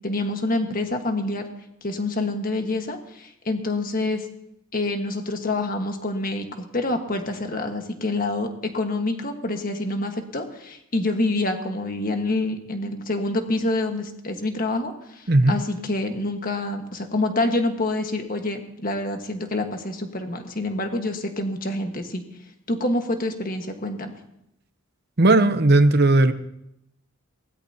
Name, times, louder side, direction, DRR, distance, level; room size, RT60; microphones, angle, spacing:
voice 1, 0.0-1.4 1.8-4.3 4.7-22.2 22.7-24.1, left 2 dB, 40° left, 5 dB, 1.5 m, -27 dB
voice 2, 25.2-26.3, right 2 dB, 50° right, 10 dB, 0.8 m, -16 dB
23.0 x 17.5 x 2.9 m, 0.80 s
head